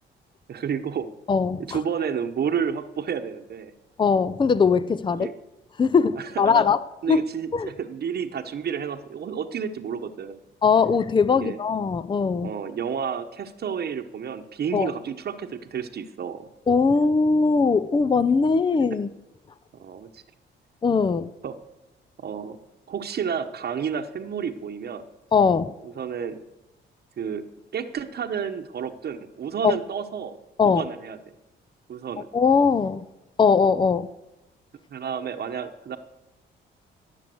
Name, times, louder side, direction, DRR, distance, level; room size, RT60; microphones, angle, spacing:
voice 1, 0.5-1.1 1.6-3.7 5.1-5.3 6.2-6.6 7.0-10.4 11.4-11.6 12.4-16.5 19.7-20.2 21.4-21.6 22.2-22.6 22.9-25.0 25.8-26.4 27.2-27.4 27.7-30.4 30.6-31.2 31.9-32.3 34.9-36.0, right 7 dB, 55° right, 1.0 m, -30 dB
voice 2, 1.3-1.8 4.0-5.3 5.8-6.8 7.1-7.2 7.5-7.7 10.6-12.5 14.7-14.9 16.7-19.1 20.8-21.3 25.3-25.7 29.6-29.8 30.6-30.9 32.3-33.1 33.4-34.1, left 5 dB, 25° left, 0.5 m, -20 dB
18.5 x 7.2 x 7.8 m
cardioid pair, 90°, 20 cm